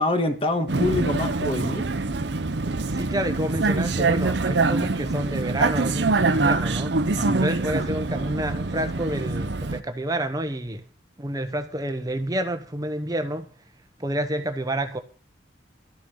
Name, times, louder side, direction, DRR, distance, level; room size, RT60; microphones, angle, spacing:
voice 1, 0.0-1.9 7.2-7.4, left 2 dB, 30° left, 1.5 m, -25 dB
Vehicle, 0.7-9.8, right 3 dB, 65° right, 0.8 m, -24 dB
voice 2, 2.9-7.0 7.3-10.8 11.2-13.5 14.0-15.0, right 1 dB, 20° right, 1.0 m, -29 dB
13.0 x 6.2 x 8.4 m
head